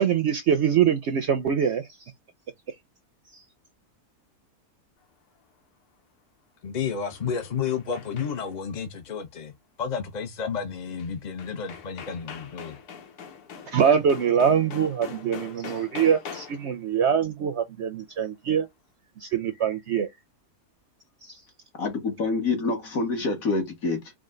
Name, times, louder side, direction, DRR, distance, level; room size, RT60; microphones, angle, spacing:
voice 1, 0.0-1.9 2.7-2.8 3.3-3.4 13.7-18.7 19.2-20.1 21.2-21.4, right 8 dB, 65° right, 0.7 m, -23 dB
voice 2, 6.6-9.5 9.8-12.8, left 6 dB, 45° left, 0.5 m, -31 dB
sound 1, 6.9-8.6 11.0-11.1 11.4-16.7, left 6 dB, 90° left, 1.4 m, -42 dB
voice 3, 21.8-24.1, left 3 dB, 65° left, 1.8 m, -27 dB
4.9 x 2.2 x 3.7 m
omnidirectional pair, 1.6 m